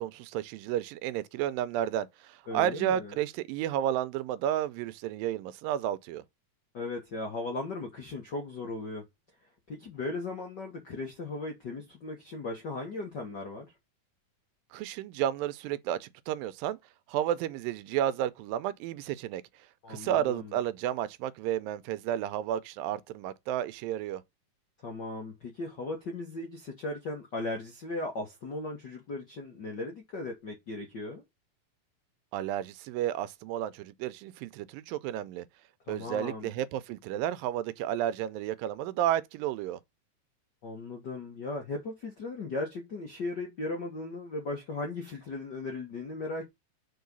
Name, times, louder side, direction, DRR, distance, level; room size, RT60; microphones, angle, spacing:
voice 1, 0.0-6.2 14.7-16.8 17.1-19.4 19.9-24.2 32.3-35.5 35.9-39.8, right 11 dB, 85° right, 2.3 m, -32 dB
voice 2, 2.5-3.1 6.7-9.0 9.7-13.7 19.8-20.5 24.8-31.2 35.9-36.5 40.6-46.4, left 2 dB, 65° left, 1.0 m, -37 dB
4.7 x 4.5 x 5.3 m
omnidirectional pair, 4.0 m